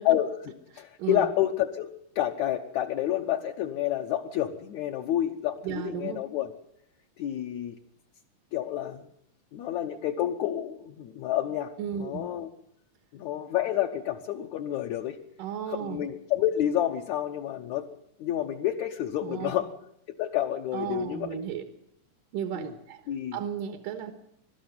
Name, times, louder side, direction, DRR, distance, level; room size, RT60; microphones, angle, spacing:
voice 1, 0.1-6.5 7.2-7.8 8.5-9.1 9.5-11.7 12.0-12.5 13.1-15.2 15.7-17.9 18.2-19.7 20.1-21.3 22.6-22.7 23.1-23.4, left 12 dB, 70° left, 1 dB, 2.1 m, -29 dB
voice 2, 0.7-1.3 5.6-6.2 11.8-12.3 15.4-16.0 19.2-19.5 20.7-21.6 22.3-23.0 23.3-24.1, right 9 dB, 80° right, 7 dB, 3.0 m, -34 dB
22.0 x 12.5 x 9.5 m, 0.75 s
omnidirectional pair, 3.8 m